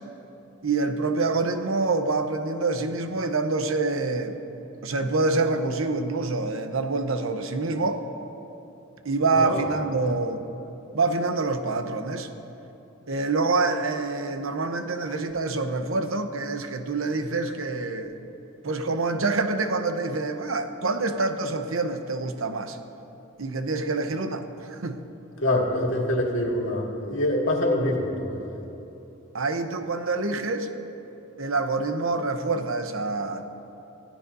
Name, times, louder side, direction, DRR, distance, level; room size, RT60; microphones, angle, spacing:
voice 1, 0.6-4.4 4.8-8.0 9.0-10.4 10.9-12.3 13.1-18.1 18.6-22.8 23.4-25.0 29.3-30.7 31.4-33.5, right 3 dB, 75° right, 7 dB, 0.9 m, -26 dB
voice 2, 25.4-28.6, left 1 dB, 70° left, -1 dB, 2.0 m, -25 dB
23.0 x 15.5 x 2.7 m, 2.9 s
head